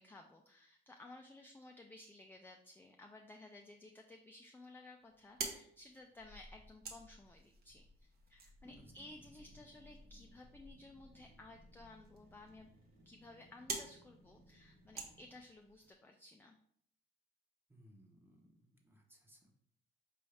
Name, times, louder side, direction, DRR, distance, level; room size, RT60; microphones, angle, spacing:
voice 1, 0.0-12.7 13.1-16.6, left 2 dB, 10° left, 3 dB, 0.4 m, -57 dB
sound 1, 5.0-15.9, right 3 dB, 55° right, 0.9 m, -50 dB
sound 2, 8.7-15.5, right 1 dB, 90° right, 1.6 m, -65 dB
voice 2, 17.7-19.5, equal, 10° right, 1 dB, 0.9 m, -63 dB
4.6 x 2.6 x 3.2 m, 0.64 s
cardioid pair, 90°, 20 cm